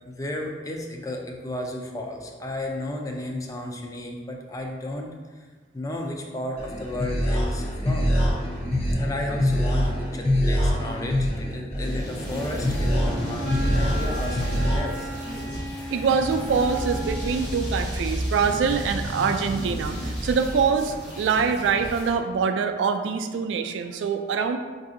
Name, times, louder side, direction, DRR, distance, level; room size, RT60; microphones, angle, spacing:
voice 1, 0.0-5.1 5.7-8.2 9.0-15.1, left 1 dB, 20° left, 1 dB, 0.4 m, -33 dB
sound 1, 6.6-14.8, equal, 35° left, 0.8 m, -25 dB
sound 2, 11.8-22.1, equal, 65° left, 1.1 m, -32 dB
Wind instrument woodwind instrument, 12.7-17.5, equal, 85° left, 0.9 m, -36 dB
voice 2, 15.9-24.6, right 5 dB, 90° right, 7 dB, 0.3 m, -24 dB
4.7 x 2.6 x 2.5 m, 1.4 s
head